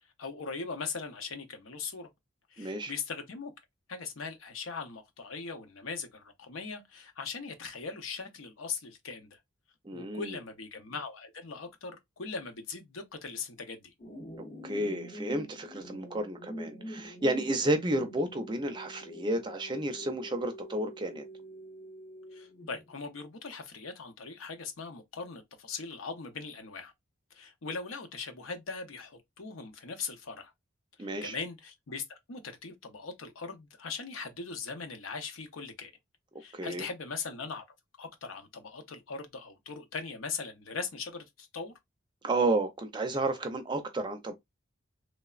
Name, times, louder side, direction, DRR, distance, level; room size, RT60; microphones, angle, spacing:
voice 1, 0.2-2.1 2.5-3.5 3.9-9.4 9.9-13.9 22.3-26.9 27.3-30.5 31.0-35.9 36.4-37.6 38.0-41.8, left 4 dB, 85° left, 0.7 m, -40 dB
voice 2, 2.6-2.9 9.8-10.4 14.6-21.2 31.0-31.3 36.5-36.8 42.2-44.3, right 2 dB, 25° right, 0.4 m, -31 dB
sound 1, 14.0-23.0, equal, 50° left, 0.8 m, -46 dB
3.2 x 2.0 x 2.3 m
head